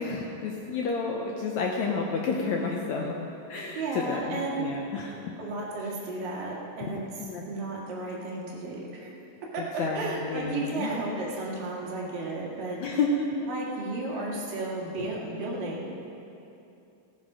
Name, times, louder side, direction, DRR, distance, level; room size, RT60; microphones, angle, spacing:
voice 1, 0.0-3.2 3.5-5.3 6.8-6.9 7.2-7.5 9.6-11.0 12.8-13.5, left 4 dB, 70° left, 0 dB, 1.8 m, -30 dB
voice 2, 3.8-7.0 7.5-9.2 9.5-9.6 9.9-12.8 13.5-15.9, right 2 dB, 70° right, -4 dB, 3.7 m, -33 dB
16.5 x 10.0 x 4.9 m, 2.8 s
omnidirectional pair, 4.1 m